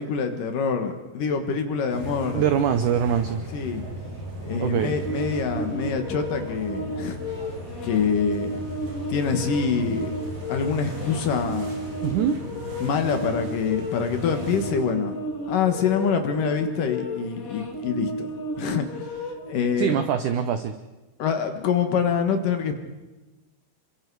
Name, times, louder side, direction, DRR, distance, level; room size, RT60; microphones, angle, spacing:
voice 1, 0.0-2.5 3.5-3.8 4.4-7.4 7.8-8.6 9.1-10.1 10.5-11.7 12.8-15.1 15.5-18.3 18.6-19.1 19.5-20.0 21.2-22.8, left 6 dB, 60° left, 6 dB, 2.8 m, -25 dB
sound 1, 1.9-14.7, right 1 dB, 55° right, 6.2 m, -37 dB
voice 2, 2.3-3.4 4.6-4.9 12.0-12.4 19.8-20.7, right 8 dB, 80° right, 9 dB, 1.8 m, -23 dB
sound 2, 5.0-19.5, equal, 45° left, 1.1 m, -33 dB
28.0 x 24.0 x 4.7 m, 1.1 s
omnidirectional pair, 4.7 m